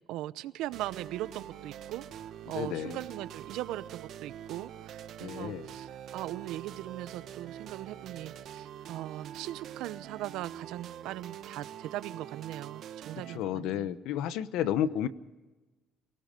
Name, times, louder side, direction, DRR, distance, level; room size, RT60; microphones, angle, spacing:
voice 1, 0.1-2.1 2.5-14.0, right 14 dB, 85° right, 16 dB, 0.8 m, -39 dB
sound 1, 0.7-13.4, right 10 dB, 60° right, 1.2 m, -45 dB
voice 2, 2.5-3.0 5.2-5.7 13.3-15.1, left 10 dB, 85° left, 15 dB, 0.9 m, -32 dB
29.0 x 18.5 x 5.3 m, 1.2 s
cardioid pair, 135°, 0 cm